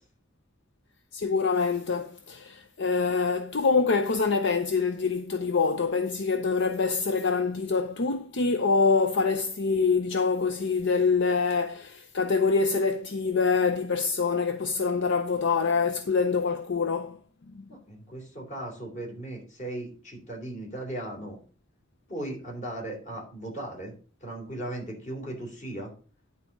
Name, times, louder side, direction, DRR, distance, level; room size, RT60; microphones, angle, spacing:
voice 1, 1.1-17.2 17.5-17.7, left 4 dB, 65° left, 0.6 m, -25 dB
voice 2, 17.7-21.4 22.1-23.9 24.2-25.9, right 1 dB, 40° left, 3.5 m, -37 dB
10.5 x 4.1 x 6.0 m
head